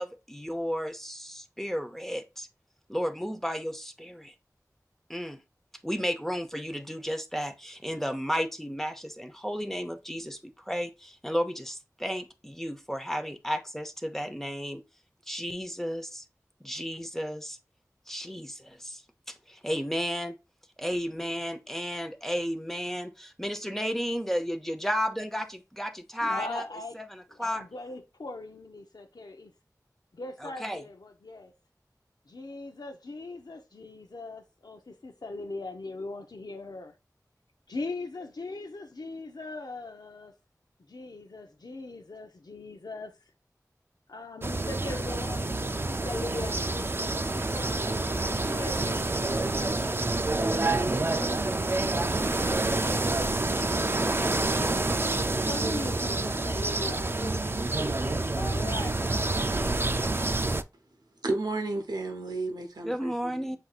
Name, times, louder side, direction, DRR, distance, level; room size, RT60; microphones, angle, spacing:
voice 1, 0.0-2.5 2.9-4.3 5.1-5.4 5.8-14.8 15.3-16.2 16.6-17.6 18.1-19.0 19.3-20.4 20.8-26.7 26.9-27.6 30.4-30.8 62.9-63.6, equal, 5° left, 0.7 m, -33 dB
voice 2, 26.2-27.0 27.3-29.5 30.1-31.5 32.3-36.9 37.7-40.3 40.9-43.1 44.1-48.0 48.3-51.3 51.9-54.9 55.3-59.0, left 2 dB, 85° left, 0.5 m, -40 dB
sound 1, 44.4-60.6, right 2 dB, 35° right, 0.3 m, -28 dB
voice 3, 61.2-63.6, right 2 dB, 90° right, 0.7 m, -32 dB
7.3 x 2.6 x 2.3 m
wide cardioid pair, 45°, 7 cm